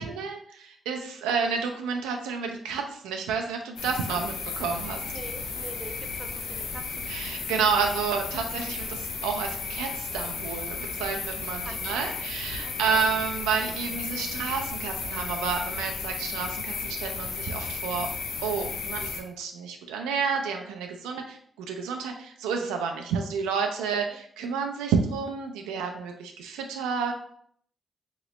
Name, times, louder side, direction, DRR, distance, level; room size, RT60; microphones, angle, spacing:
voice 1, 0.0-5.0 7.1-18.1 18.4-27.1, right 5 dB, 85° right, 3 dB, 0.3 m, -30 dB
sound 1, 3.8-19.2, left 5 dB, 80° left, 0.5 m, -34 dB
voice 2, 4.9-7.1 11.6-12.3 12.6-13.1 24.0-24.2, right 2 dB, 35° right, 6 dB, 0.5 m, -44 dB
2.9 x 2.9 x 2.9 m, 0.64 s
supercardioid pair, 45°, 0 cm